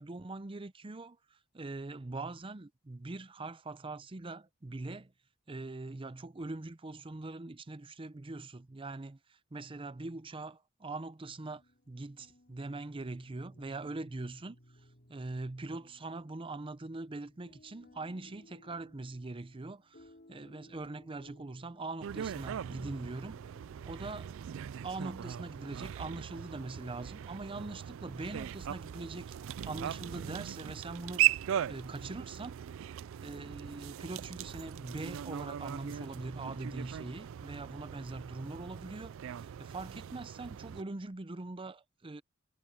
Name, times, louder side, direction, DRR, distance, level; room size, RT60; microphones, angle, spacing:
voice 1, 0.0-5.1 5.5-11.6 11.9-14.6 15.1-23.4 23.8-24.3 24.8-29.4 29.6-31.2 31.7-32.5 33.2-42.2, right 2 dB, 25° right, 0.6 m, -42 dB
sound 1, 11.4-27.3, left 1 dB, 45° left, 6.4 m, -62 dB
sound 2, 22.0-40.8, right 11 dB, 65° right, 0.3 m, -38 dB
head